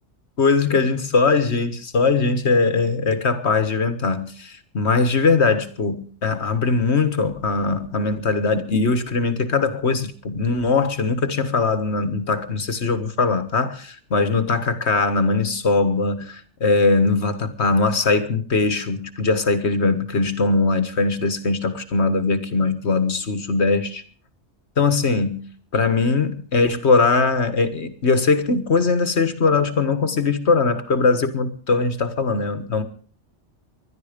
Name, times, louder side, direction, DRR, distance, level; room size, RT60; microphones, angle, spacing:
voice 1, 0.4-24.0 24.8-25.5 25.7-32.8, left 4 dB, 65° left, 1.8 m, -21 dB
21.0 x 12.0 x 5.2 m
omnidirectional pair, 1.2 m